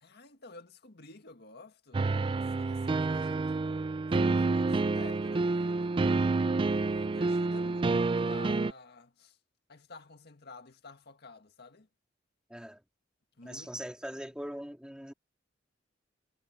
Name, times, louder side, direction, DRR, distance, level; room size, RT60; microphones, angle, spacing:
voice 1, 0.0-3.6 4.2-6.0 6.7-9.4 9.7-11.9 13.4-13.9, left 3 dB, 60° left, 1.8 m, -51 dB
sound 1, 1.9-8.7, right 3 dB, 25° right, 0.3 m, -28 dB
voice 2, 12.5-12.8 13.4-15.1, equal, 5° right, 2.5 m, -41 dB
head